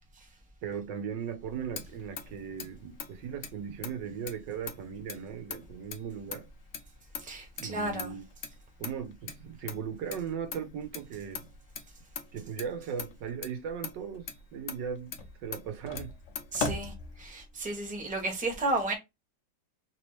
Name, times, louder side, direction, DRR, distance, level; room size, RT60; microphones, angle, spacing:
voice 1, 0.6-6.5 7.6-8.2 8.8-11.5 12.3-15.1 15.4-16.1, right 7 dB, 80° right, 1.5 m, -38 dB
Motor vehicle (road), 1.3-17.6, left 5 dB, 60° left, 0.8 m, -42 dB
voice 2, 7.2-8.1 16.5-18.9, right 2 dB, 5° right, 0.9 m, -33 dB
3.5 x 3.0 x 3.0 m
omnidirectional pair, 1.9 m